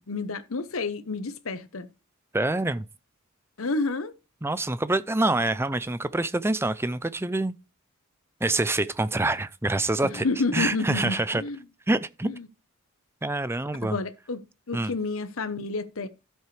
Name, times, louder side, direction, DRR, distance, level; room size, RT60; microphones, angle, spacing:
voice 1, 0.1-1.9 3.6-4.1 10.0-11.7 12.2-12.5 13.8-16.1, left 3 dB, 70° left, 1.0 m, -30 dB
voice 2, 2.3-2.9 4.4-7.5 8.4-10.2 10.5-11.4 11.9-12.3 13.2-14.0 14.7-14.9, right 2 dB, 10° right, 0.5 m, -26 dB
12.5 x 7.5 x 3.3 m
head